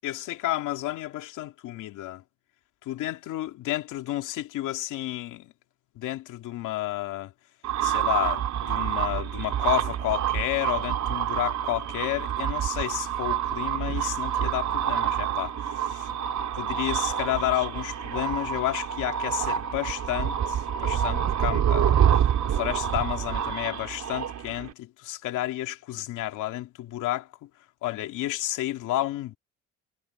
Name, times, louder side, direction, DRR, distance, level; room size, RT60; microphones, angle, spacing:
voice 1, 0.0-2.2 2.8-5.5 5.9-7.3 7.8-16.1 16.5-22.0 22.5-27.5 27.8-29.4, left 15 dB, 90° left, 2.7 m, -31 dB
sound 1, 7.6-24.7, right 9 dB, 65° right, 3.4 m, -27 dB
cardioid pair, 90°, 30 cm